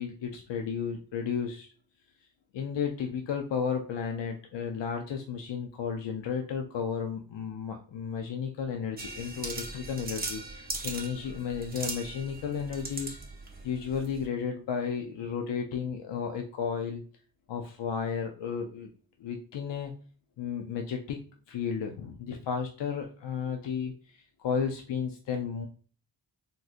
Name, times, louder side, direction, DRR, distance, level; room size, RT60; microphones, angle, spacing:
voice 1, 0.0-1.7 2.5-13.2 13.6-17.0 17.5-18.9 19.2-19.9 20.4-21.2 21.5-25.7, left 6 dB, 75° left, 3 dB, 0.5 m, -33 dB
sound 1, 9.0-14.3, right 2 dB, 20° right, 0.7 m, -39 dB
3.7 x 2.6 x 2.4 m, 0.40 s
wide cardioid pair, 100°, 44 cm